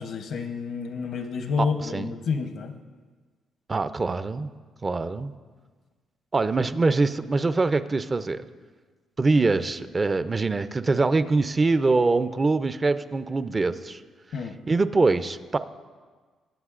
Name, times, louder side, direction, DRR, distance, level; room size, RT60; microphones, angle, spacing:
voice 1, 0.0-2.7 14.3-14.6, left 5 dB, 70° left, 7 dB, 0.8 m, -29 dB
voice 2, 3.7-4.5 4.8-5.3 6.3-8.4 9.2-14.0 14.7-15.6, right 3 dB, 30° right, 12 dB, 0.4 m, -23 dB
19.5 x 7.5 x 2.5 m, 1.4 s
cardioid pair, 90°, 0 cm